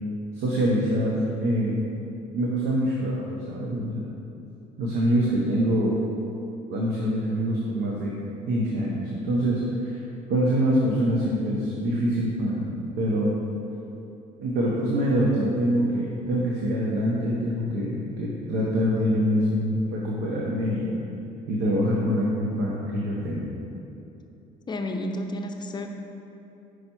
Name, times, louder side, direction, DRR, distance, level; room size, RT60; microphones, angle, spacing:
voice 1, 0.3-1.8 2.3-4.0 4.8-5.9 6.7-8.2 8.5-10.0 10.3-13.3 14.4-20.9 21.5-23.5, equal, 80° right, -4 dB, 0.9 m, -25 dB
voice 2, 24.7-25.9, left 1 dB, 25° left, 4 dB, 0.5 m, -31 dB
5.4 x 4.9 x 4.5 m, 2.8 s
cardioid pair, 110°, 17 cm